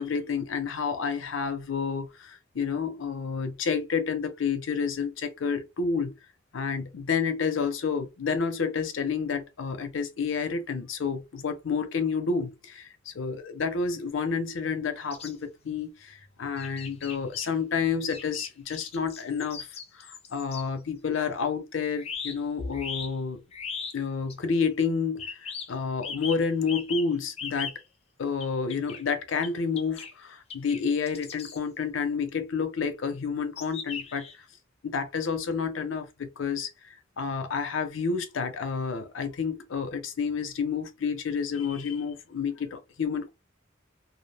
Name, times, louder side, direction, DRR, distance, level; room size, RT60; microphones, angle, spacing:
voice 1, 0.0-6.1 6.5-19.7 20.0-23.4 23.9-27.7 28.2-34.3 34.8-43.3, left 5 dB, 85° left, 0.5 m, -30 dB
sound 1, 15.1-15.3 16.6-17.5 18.1-20.6 22.0-23.1 23.5-24.0 24.3-24.4 25.2-25.7 26.0-27.8 28.4-29.0 29.4-29.5 29.8-30.1 30.5-30.8 31.1-31.6 33.6-34.3, left 6 dB, 30° left, 0.3 m, -38 dB
2.2 x 2.0 x 3.3 m
head